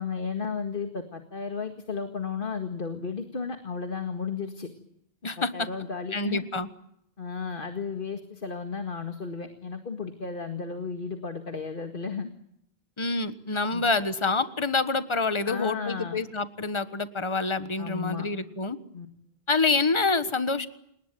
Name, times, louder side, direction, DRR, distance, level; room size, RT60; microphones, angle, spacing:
voice 1, 0.0-4.7 5.4-6.4 7.2-12.3 13.7-13.8 15.5-16.2 17.8-18.3 18.9-19.1, left 5 dB, 55° left, 6 dB, 2.1 m, -34 dB
voice 2, 5.2-5.7 6.1-6.7 13.0-18.8 19.5-20.7, left 3 dB, 30° left, 11 dB, 1.4 m, -27 dB
29.0 x 19.5 x 9.2 m, 0.76 s
omnidirectional pair, 1.0 m